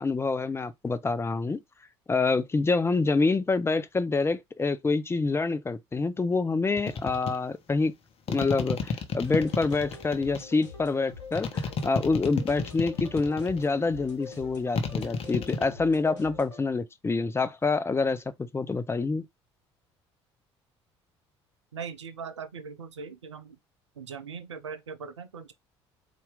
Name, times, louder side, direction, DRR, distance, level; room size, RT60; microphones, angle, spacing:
voice 1, 0.0-1.6 2.1-7.9 8.3-19.2, left 3 dB, 15° left, 0.5 m, -27 dB
sound 1, 6.8-7.4 8.3-10.4 11.4-13.6 14.8-15.7, left 5 dB, 40° left, 0.9 m, -30 dB
sound 2, 9.2-16.6, left 5 dB, 80° left, 1.1 m, -45 dB
voice 2, 21.7-23.6 24.0-25.5, right 6 dB, 80° right, 0.5 m, -40 dB
4.2 x 2.6 x 3.6 m
figure-of-eight pair, 55°, 15 cm